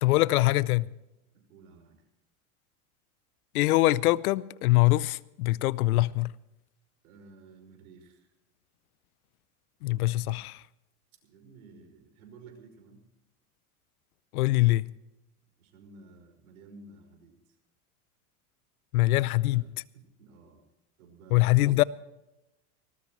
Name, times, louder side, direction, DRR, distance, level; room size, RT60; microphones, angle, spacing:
voice 1, 0.0-0.9 3.5-6.3 9.8-10.6 14.3-14.9 18.9-19.7 21.3-21.8, left 18 dB, 75° left, 0.7 m, -23 dB
voice 2, 1.3-2.0 7.0-8.3 11.2-13.0 15.6-17.6 19.1-19.7 19.9-20.6 21.0-21.9, right 3 dB, 75° right, 5.7 m, -53 dB
20.0 x 19.0 x 3.2 m
hypercardioid pair, 100°, 44 cm